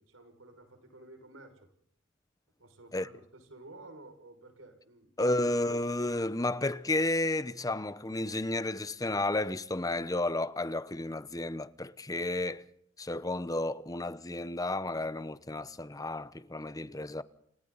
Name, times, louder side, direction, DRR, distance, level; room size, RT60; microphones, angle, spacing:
voice 1, 0.0-1.7 2.6-5.4, right 2 dB, 85° right, 6.2 m, -52 dB
voice 2, 5.2-12.6 13.0-17.2, left 2 dB, 20° left, 0.9 m, -32 dB
29.5 x 29.5 x 4.1 m
head